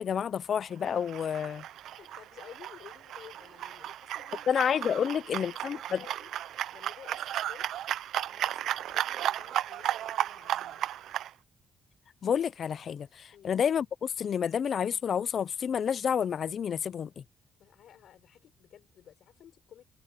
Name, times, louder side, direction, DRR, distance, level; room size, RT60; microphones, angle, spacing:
voice 1, 0.0-1.6 4.5-6.0 12.2-17.2, left 8 dB, 45° left, 0.5 m, -29 dB
sound 1, 0.8-11.3, right 12 dB, 90° right, 0.4 m, -34 dB
voice 2, 2.0-4.5 5.0-6.3 6.7-7.7 8.3-10.9 13.3-13.5 17.6-19.8, left 10 dB, 70° left, 4.2 m, -53 dB
cardioid pair, 160°, 0 cm